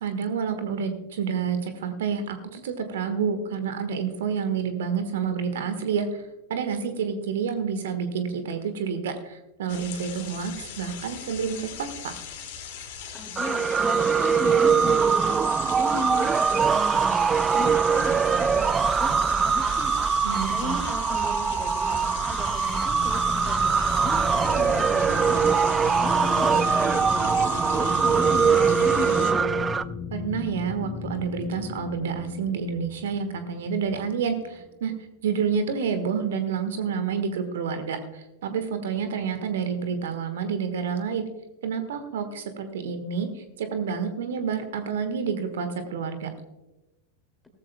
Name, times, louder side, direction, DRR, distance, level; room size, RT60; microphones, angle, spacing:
voice 1, 0.0-12.1 20.2-20.8 30.1-34.9 35.2-41.3 41.6-46.3, right 6 dB, 60° right, 9 dB, 1.4 m, -29 dB
sound 1, 9.7-29.3, left 7 dB, 50° left, 2.3 m, -39 dB
voice 2, 13.1-19.9 20.5-23.2 23.4-25.4 26.0-29.5, left 2 dB, 10° left, 5 dB, 2.5 m, -36 dB
sound 2, 13.4-29.8, right 6 dB, 20° right, 0.4 m, -22 dB
sound 3, 21.4-34.7, left 6 dB, 25° left, 1.1 m, -36 dB
17.5 x 14.5 x 2.2 m, 1.0 s
figure-of-eight pair, 90°, 0 cm